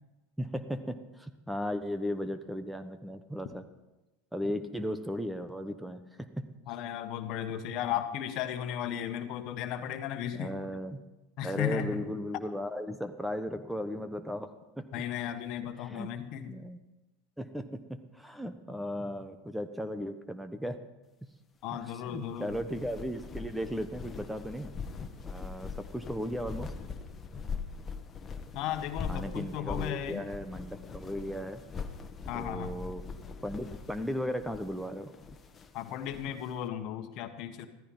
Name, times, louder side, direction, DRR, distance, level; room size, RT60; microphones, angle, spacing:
voice 1, 0.4-3.6 4.3-6.4 10.3-11.0 11.4-14.5 14.8-15.0 15.8-16.1 16.5-16.8 17.4-17.7 18.1-20.8 21.7-24.7 25.2-26.7 29.1-31.6 32.3-33.1 33.4-35.1, equal, 5° right, 10 dB, 1.1 m, -36 dB
voice 2, 6.7-10.5 11.4-12.0 14.9-16.6 21.6-22.5 28.5-30.2 32.3-32.8 35.7-37.7, left 10 dB, 55° left, 8 dB, 1.5 m, -35 dB
sound 1, 22.3-36.5, left 5 dB, 25° left, 1.6 m, -42 dB
15.0 x 14.5 x 5.6 m, 1.0 s
hypercardioid pair, 90°, 0 cm